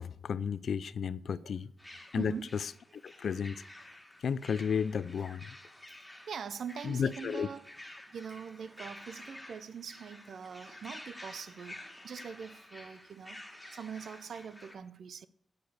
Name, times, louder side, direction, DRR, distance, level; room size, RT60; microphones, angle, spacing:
voice 1, 0.0-1.7 2.1-2.7 3.0-3.6 4.2-5.6 6.8-7.5, left 7 dB, 80° left, 0.3 m, -33 dB
sound 1, 1.8-14.7, left 1 dB, 10° left, 2.2 m, -51 dB
voice 2, 2.2-2.5 5.2-5.3 6.3-7.7 8.1-13.4 13.7-15.3, right 7 dB, 80° right, 0.5 m, -43 dB
7.9 x 6.6 x 6.9 m
cardioid pair, 90°, 0 cm